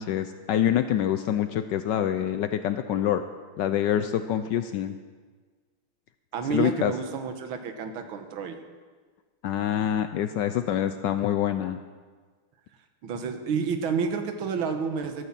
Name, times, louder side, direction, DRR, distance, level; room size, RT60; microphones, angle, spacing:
voice 1, 0.0-3.2 3.6-4.9 6.5-6.9 9.4-11.8, left 10 dB, 75° left, 10 dB, 1.0 m, -26 dB
voice 2, 6.3-8.6 13.0-15.3, right 6 dB, 70° right, 7 dB, 1.9 m, -30 dB
13.0 x 9.7 x 7.4 m, 1.5 s
omnidirectional pair, 2.3 m